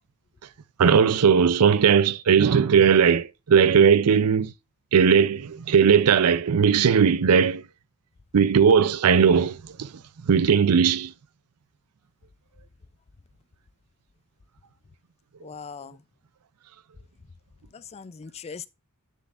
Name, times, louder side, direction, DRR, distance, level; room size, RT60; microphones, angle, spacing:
voice 1, 0.8-4.5 4.9-7.6 8.3-9.9 10.3-11.1, right 6 dB, 90° right, 0.5 m, -18 dB
voice 2, 15.4-16.0 17.7-18.7, left 6 dB, 30° left, 0.3 m, -40 dB
9.2 x 6.7 x 2.5 m
head